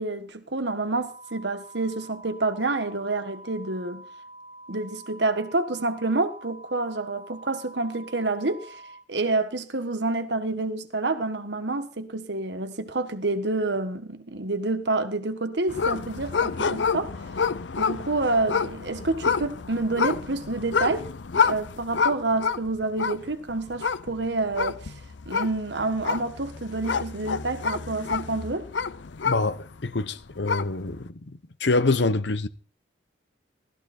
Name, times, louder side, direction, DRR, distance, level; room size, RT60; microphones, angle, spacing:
voice 1, 0.0-4.0 4.7-8.8 9.1-17.1 17.8-21.1 21.4-24.9 25.3-28.7, right 2 dB, 70° right, 1.5 m, -28 dB
sound 1, 0.9-9.0, right 1 dB, 50° left, 3.3 m, -46 dB
sound 2, 15.7-29.9 30.2-30.9, left 5 dB, 90° left, 0.7 m, -28 dB
voice 2, 29.2-31.1 31.6-32.5, left 3 dB, 70° left, 1.0 m, -25 dB
16.5 x 13.5 x 4.4 m
head